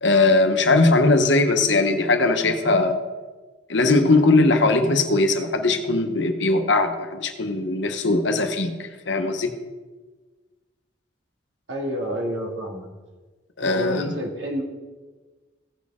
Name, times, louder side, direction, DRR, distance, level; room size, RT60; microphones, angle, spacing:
voice 1, 0.0-3.0 3.7-9.5 13.6-14.1, left 2 dB, 65° left, 6 dB, 1.0 m, -20 dB
voice 2, 11.7-12.9 13.6-14.6, equal, 65° right, 0 dB, 2.0 m, -29 dB
16.5 x 6.4 x 3.6 m, 1.3 s
head